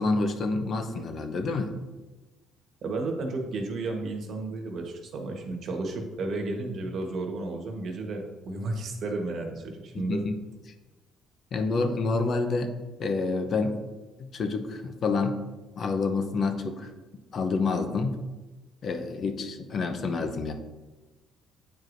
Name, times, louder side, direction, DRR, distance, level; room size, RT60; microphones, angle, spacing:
voice 1, 0.0-1.7 9.9-10.4 11.5-12.7 13.0-13.8 14.2-15.4 15.8-16.9 17.3-18.2 18.8-20.5, left 3 dB, 50° left, 6 dB, 0.7 m, -28 dB
voice 2, 2.8-10.2, right 2 dB, 60° right, 2 dB, 1.2 m, -33 dB
9.1 x 4.7 x 2.6 m, 1.2 s
cardioid pair, 95°, 0 cm